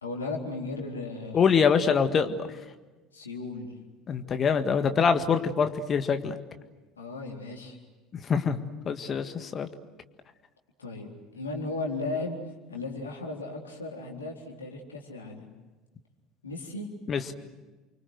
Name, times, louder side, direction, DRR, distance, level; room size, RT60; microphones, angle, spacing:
voice 1, 0.0-1.5 3.1-3.7 7.0-7.8 10.8-12.4 12.7-15.5 16.4-16.9, left 3 dB, 80° left, 0 dB, 4.0 m, -36 dB
voice 2, 1.3-2.5 4.1-6.4 8.1-8.6 8.9-9.7 17.1-17.3, left 6 dB, 35° left, 8 dB, 1.8 m, -24 dB
29.5 x 24.5 x 7.9 m, 1.2 s
figure-of-eight pair, 65°, 0 cm